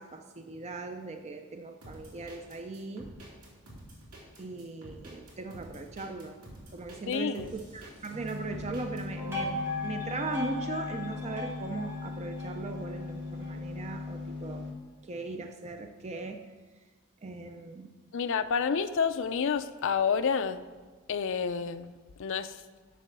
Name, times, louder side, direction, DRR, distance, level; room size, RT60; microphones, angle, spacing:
voice 1, 0.0-3.1 4.4-6.4 6.7-14.7 15.0-16.4 17.2-17.9, right 3 dB, 30° right, 5 dB, 0.5 m, -39 dB
sound 1, 1.8-9.0, right 1 dB, 80° right, 3.3 m, -49 dB
voice 2, 7.1-7.5 18.1-20.7 21.1-21.9 22.2-22.6, left 6 dB, 60° left, 10 dB, 0.4 m, -29 dB
sound 2, 8.1-14.7, left 3 dB, 55° right, 1.7 m, -39 dB
sound 3, 9.2-13.6, left 3 dB, 10° right, 2.0 m, -38 dB
7.7 x 6.8 x 6.5 m, 1.4 s
head